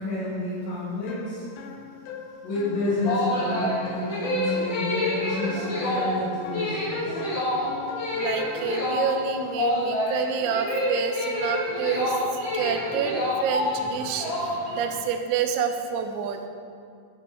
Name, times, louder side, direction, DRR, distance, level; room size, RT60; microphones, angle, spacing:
voice 1, 0.0-1.4 2.4-7.2, left 1 dB, 65° left, -13 dB, 4.7 m, -30 dB
sound 1, 1.1-8.8, left 3 dB, 80° left, 2.9 m, -39 dB
sound 2, 2.8-14.9, left 1 dB, 40° left, 1.7 m, -28 dB
voice 2, 8.2-16.4, right 7 dB, 85° right, 6 dB, 3.4 m, -28 dB
14.0 x 6.1 x 4.6 m, 2.2 s
omnidirectional pair, 5.8 m